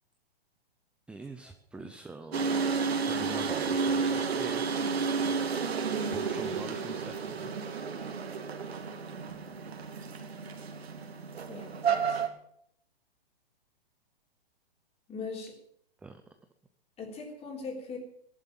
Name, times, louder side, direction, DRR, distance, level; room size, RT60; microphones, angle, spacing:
voice 1, 1.1-2.4 3.1-4.7 5.0-5.4 6.1-7.5 16.0-16.2, right 3 dB, 5° right, 7 dB, 0.6 m, -44 dB
sound 1, 2.3-12.3, right 5 dB, 85° right, 2.3 m, -31 dB
voice 2, 11.5-12.2 15.1-15.6 17.0-18.0, left 4 dB, 20° left, 2 dB, 3.5 m, -40 dB
14.5 x 11.5 x 7.5 m, 0.70 s
hypercardioid pair, 140°, 30 cm